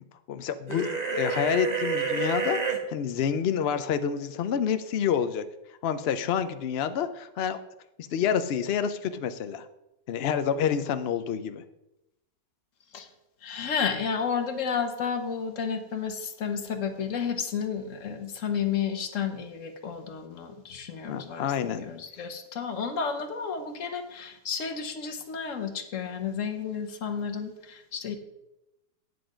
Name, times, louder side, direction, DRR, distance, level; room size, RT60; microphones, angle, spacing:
voice 1, 0.3-2.6 2.9-5.4 5.8-7.6 8.1-9.7 10.1-11.6 21.1-21.8, left 8 dB, 85° left, 10 dB, 0.5 m, -28 dB
sound 1, 0.7-2.8, right 5 dB, 30° right, 1.0 m, -29 dB
voice 2, 13.4-28.1, left 6 dB, 50° left, 7 dB, 1.3 m, -32 dB
9.6 x 7.7 x 5.0 m, 0.90 s
omnidirectional pair, 1.8 m